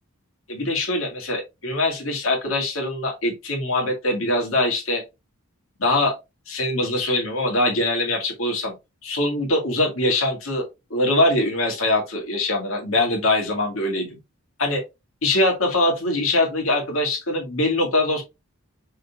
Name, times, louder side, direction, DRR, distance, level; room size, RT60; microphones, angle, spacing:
voice 1, 0.5-5.0 5.8-6.1 6.5-8.7 9.0-14.1 14.6-14.8 15.2-18.2, left 1 dB, 80° left, 2.0 m, -23 dB
5.5 x 3.9 x 2.4 m
head